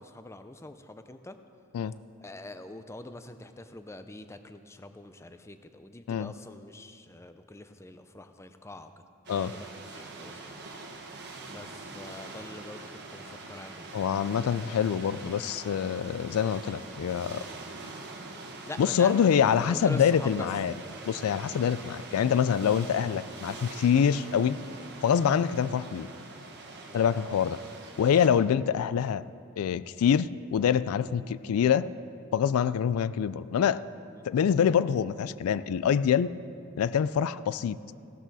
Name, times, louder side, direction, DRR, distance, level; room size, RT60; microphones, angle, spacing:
voice 1, 0.0-1.4 2.2-8.9 9.3-9.7 9.9-10.5 11.5-12.8 13.1-13.9 17.8-17.9 18.7-20.5 26.9-27.3 31.2-31.3 34.2-34.3, left 2 dB, 15° left, 9 dB, 0.4 m, -44 dB
sound 1, 9.2-28.3, right 3 dB, 50° right, 1.3 m, -44 dB
voice 2, 13.9-17.4 18.8-20.7 21.1-24.6 25.0-26.1 26.9-27.6 28.0-29.2 29.6-31.9 32.3-33.8 34.2-36.3 36.8-37.8, left 8 dB, 80° left, 16 dB, 0.3 m, -25 dB
16.0 x 12.0 x 4.1 m, 2.5 s
head